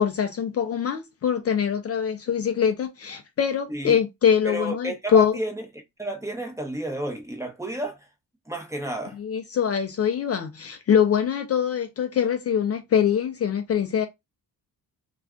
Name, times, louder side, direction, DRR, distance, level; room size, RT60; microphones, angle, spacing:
voice 1, 0.0-5.4 9.2-14.1, left 8 dB, 45° left, 0.4 m, -23 dB
voice 2, 4.4-5.7 6.0-8.1 8.5-9.2, right 1 dB, 10° right, 0.7 m, -31 dB
2.4 x 2.2 x 3.5 m
cardioid pair, 100°, 35 cm